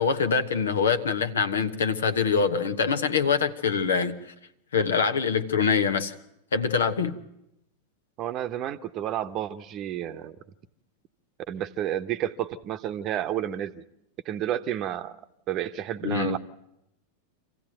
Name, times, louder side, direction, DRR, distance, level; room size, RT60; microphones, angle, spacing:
voice 1, 0.0-4.2 4.7-6.1 6.5-7.2 16.0-16.4, left 6 dB, 65° left, 1.2 m, -24 dB
voice 2, 8.2-10.4 11.5-13.8 14.2-15.1 15.5-16.4, right 11 dB, 35° right, 1.0 m, -31 dB
26.0 x 15.5 x 9.1 m
figure-of-eight pair, 90°, 0 cm